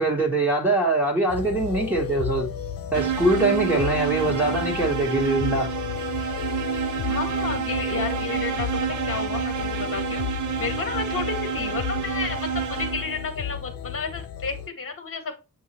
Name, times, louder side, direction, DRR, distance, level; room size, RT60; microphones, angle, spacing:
voice 1, 0.0-2.5 2.9-5.7, right 2 dB, 5° right, 2.0 m, -23 dB
sound 1, 1.3-14.7, left 9 dB, 75° left, 0.9 m, -33 dB
sound 2, 2.9-13.3, right 8 dB, 55° right, 0.7 m, -29 dB
voice 2, 4.2-4.6 7.1-8.7 9.0-10.2 10.6-15.3, left 4 dB, 40° left, 1.8 m, -32 dB
7.9 x 2.8 x 4.5 m
wide cardioid pair, 130°, 35 cm